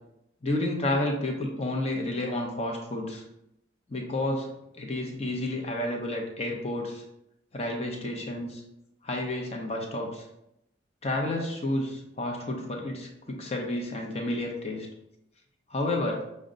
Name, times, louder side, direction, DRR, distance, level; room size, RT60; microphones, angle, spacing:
voice 1, 0.4-3.2 3.9-4.5 4.7-7.0 7.5-8.6 9.0-10.3 11.0-14.9 15.7-16.2, left 1 dB, 35° left, 1 dB, 0.7 m, -30 dB
6.3 x 2.2 x 3.8 m, 0.84 s
head